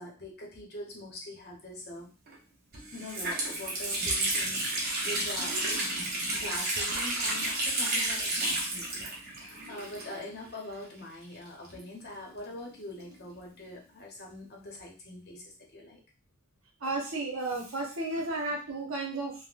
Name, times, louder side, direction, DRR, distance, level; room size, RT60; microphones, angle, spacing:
voice 1, 0.0-2.1 2.9-5.6 6.3-16.0, left 1 dB, 45° left, -1 dB, 0.8 m, -43 dB
Water tap faucet, 2.3-2.4 2.7-10.5 10.7-10.8 11.6-13.2, right 2 dB, 45° right, 0.8 m, -31 dB
voice 2, 16.8-19.5, right 2 dB, 70° right, -1 dB, 0.9 m, -33 dB
3.5 x 2.1 x 2.4 m, 0.35 s
head